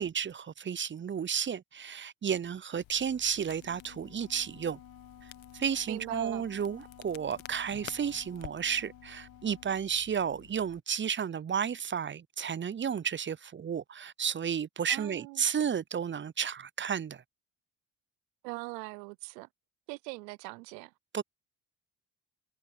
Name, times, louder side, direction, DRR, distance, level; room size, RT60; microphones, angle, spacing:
voice 1, 0.0-4.8 5.5-17.2 21.1-21.2, right 7 dB, 25° right, 0.5 m, -32 dB
Crackle, 2.8-10.8, left 15 dB, 65° left, 1.3 m, -53 dB
Wind instrument woodwind instrument, 3.5-9.8, left 9 dB, 45° left, 1.6 m, -54 dB
voice 2, 5.9-6.5 14.9-15.5 18.4-19.5 19.9-20.9, right 26 dB, 85° right, 0.8 m, -41 dB
hypercardioid pair, 45°, 49 cm